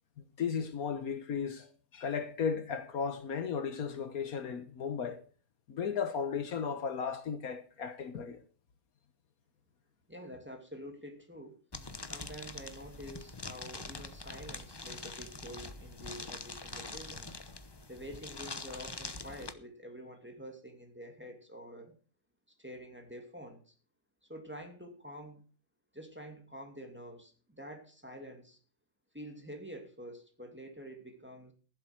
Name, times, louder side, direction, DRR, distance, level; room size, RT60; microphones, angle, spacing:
voice 1, 0.4-5.2 5.7-8.4, left 6 dB, 70° left, 1.6 m, -35 dB
voice 2, 10.1-11.6 12.0-17.3 17.9-22.0 22.6-23.7 24.3-25.4 25.9-28.6 29.1-31.5, equal, 5° right, 2.5 m, -47 dB
sound 1, 11.7-19.5, left 3 dB, 20° left, 0.7 m, -44 dB
15.5 x 7.7 x 6.0 m
omnidirectional pair, 1.6 m